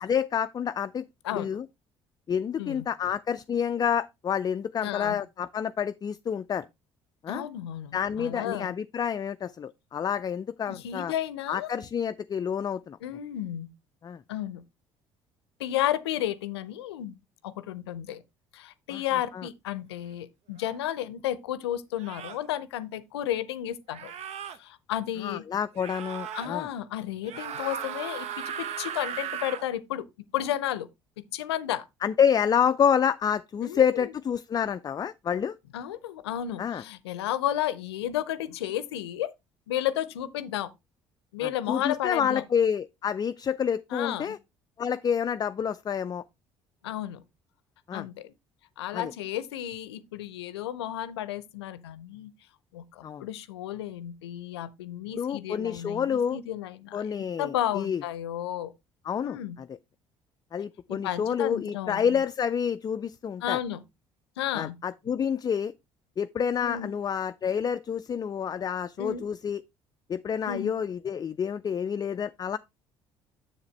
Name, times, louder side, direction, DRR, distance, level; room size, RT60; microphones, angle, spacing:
voice 1, 0.0-1.0 1.3-1.6 2.3-6.7 7.2-7.4 7.9-11.1 11.5-13.0 14.0-14.2 18.9-19.0 19.3-19.5 25.2-26.7 32.0-35.6 36.6-36.8 41.4-44.4 44.8-46.2 47.9-48.1 48.9-49.1 53.0-53.3 55.1-56.4 56.9-58.0 59.1-59.7 60.5-63.6 64.5-65.7 66.2-69.6 70.1-72.6, left 8 dB, 30° left, 0.4 m, -28 dB
voice 2, 1.2-1.6 2.6-2.9 4.8-5.2 7.3-8.7 10.7-11.7 13.0-13.7 14.3-14.6 15.6-17.2 17.4-18.2 18.5-24.1 24.6-25.4 26.3-30.1 30.3-30.9 31.2-31.9 33.6-34.1 35.7-39.3 39.7-40.7 41.3-42.4 43.9-44.4 46.8-47.2 47.9-48.3 48.8-52.3 52.7-58.7 59.2-59.6 60.9-62.2 63.4-63.8 64.4-64.8 66.6-66.9 69.0-69.3 70.5-70.7, left 12 dB, 85° left, 0.6 m, -32 dB
sound 1, 20.6-20.8 22.0-22.5 23.9-24.6 25.8-26.5 27.2-29.7, right 8 dB, 55° right, 0.7 m, -37 dB
7.1 x 7.1 x 3.2 m
hypercardioid pair, 55°, 13 cm